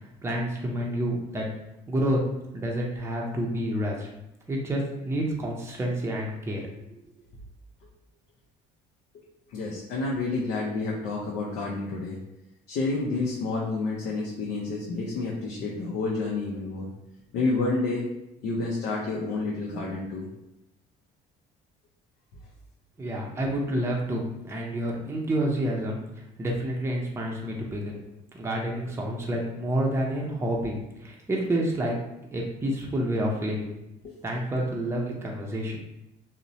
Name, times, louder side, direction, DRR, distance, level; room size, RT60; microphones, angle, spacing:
voice 1, 0.2-1.4 1.9-2.2 2.5-4.1 4.5-7.0 23.0-26.0 26.4-28.0 28.3-32.0 32.3-33.7 34.2-35.8, right 1 dB, 15° right, -2 dB, 0.5 m, -29 dB
voice 2, 9.5-12.2 12.7-16.9 17.3-18.1 18.4-20.3 34.0-34.1, left 3 dB, 75° left, -3 dB, 0.5 m, -29 dB
2.8 x 2.0 x 2.6 m, 0.88 s
supercardioid pair, 85°, 17 cm